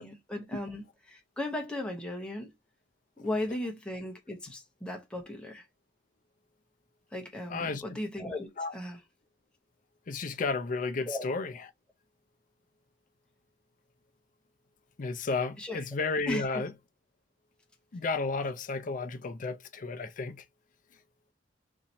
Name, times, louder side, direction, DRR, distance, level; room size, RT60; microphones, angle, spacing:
voice 1, 0.0-2.5 3.2-5.7 7.1-9.0 11.1-11.3 15.6-15.8 16.3-16.6, left 1 dB, 5° left, 0.8 m, -36 dB
voice 2, 7.5-7.8 8.6-8.7 10.1-11.5 15.0-16.7 17.9-20.4, left 3 dB, 50° left, 0.5 m, -32 dB
2.9 x 2.6 x 4.1 m
head